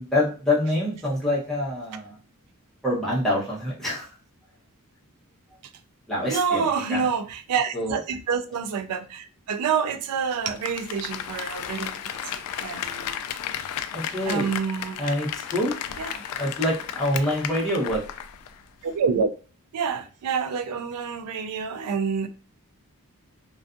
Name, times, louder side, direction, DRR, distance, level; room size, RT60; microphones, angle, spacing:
voice 1, 0.0-2.2 2.8-4.1 6.1-6.6 6.9-7.0 7.7-8.0 13.9-14.5 15.0-15.8 16.4-18.0, left 1 dB, ahead, 0.9 m, -26 dB
voice 2, 6.3-13.2 14.2-15.1 16.0-16.2 18.8-19.3 19.7-22.3, right 6 dB, 85° right, 0.3 m, -27 dB
Applause, 10.4-18.6 18.9-19.0, left 9 dB, 85° left, 0.3 m, -34 dB
2.5 x 2.3 x 2.4 m
head